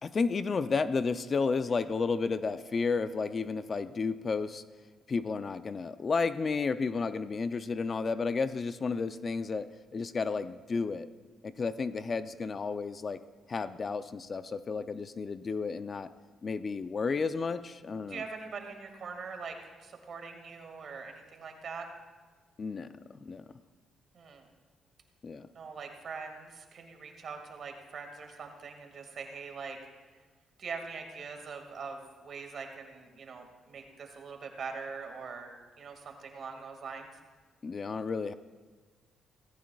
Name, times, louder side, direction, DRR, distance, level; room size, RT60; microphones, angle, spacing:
voice 1, 0.0-4.6 5.1-9.7 9.9-11.1 11.4-13.2 13.5-16.1 16.4-18.2 22.6-22.9 23.2-23.4 25.2-25.5 37.6-38.3, left 4 dB, 40° left, 12 dB, 0.4 m, -32 dB
voice 2, 18.1-21.9 24.1-24.5 25.5-29.8 30.6-35.5 35.8-37.2, right 5 dB, 55° right, 4 dB, 2.0 m, -42 dB
17.5 x 15.0 x 2.4 m, 1.4 s
cardioid pair, 90°, 0 cm